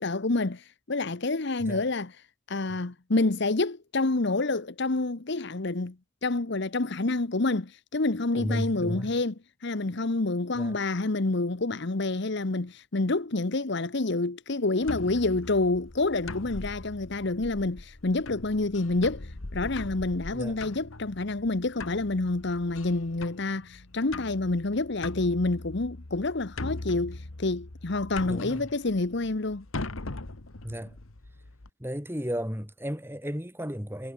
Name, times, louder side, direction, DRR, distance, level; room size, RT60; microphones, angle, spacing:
voice 1, 0.0-2.2 2.5-6.0 6.2-9.3 9.6-29.6, left 2 dB, 55° left, 1.0 m, -28 dB
voice 2, 8.3-9.1 10.6-10.8 20.3-20.6 28.2-28.7 30.6-31.0 31.8-34.1, equal, 10° right, 5.2 m, -34 dB
sound 1, 14.8-31.7, left 2 dB, 75° left, 1.5 m, -41 dB
head